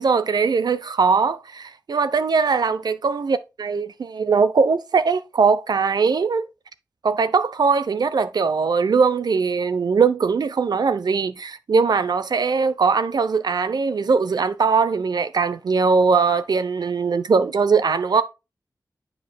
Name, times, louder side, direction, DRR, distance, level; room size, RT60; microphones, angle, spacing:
voice 1, 0.0-6.4 7.0-18.2, right 5 dB, 80° right, 0.7 m, -20 dB
9.2 x 5.4 x 2.3 m
wide cardioid pair, 80°, 7 cm